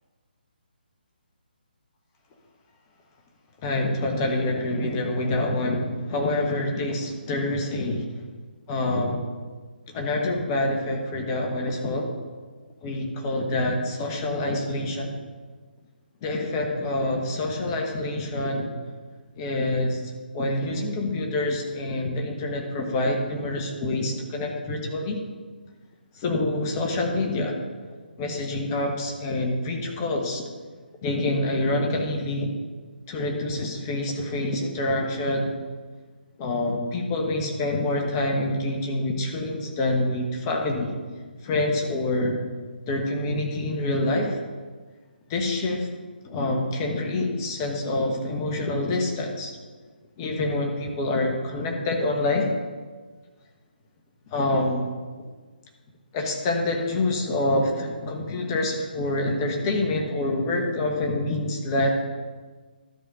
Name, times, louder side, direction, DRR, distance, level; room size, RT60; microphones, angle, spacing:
voice 1, 3.6-8.2 8.7-9.2 9.9-12.1 12.8-15.1 16.2-18.7 19.4-25.2 26.1-27.6 28.2-30.4 31.0-32.6 33.1-35.5 36.4-40.9 41.4-42.4 42.9-44.4 45.3-45.9 46.2-49.5 50.2-52.5 54.3-54.9 56.1-61.9, left 2 dB, 25° left, 1 dB, 1.2 m, -26 dB
12.0 x 4.1 x 5.4 m, 1.4 s
figure-of-eight pair, 145°, 5 cm